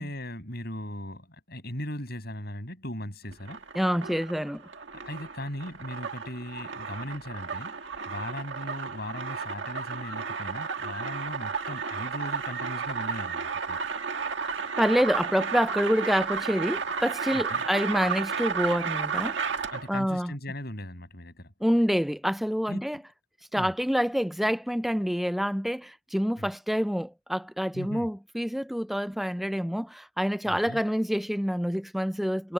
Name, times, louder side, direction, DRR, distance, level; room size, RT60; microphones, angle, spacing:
voice 1, 0.0-3.6 5.0-7.7 8.1-13.8 17.3-17.6 19.7-21.5 22.7-22.8 23.5-23.7 26.4-26.5 27.7-28.1 30.5-30.8, left 1 dB, 50° left, 6.9 m, -38 dB
sound 1, 3.3-20.0, right 5 dB, 60° right, 1.9 m, -33 dB
voice 2, 3.8-4.6 14.8-19.4 19.9-20.3 21.6-23.0 23.5-32.5, equal, ahead, 0.4 m, -27 dB
head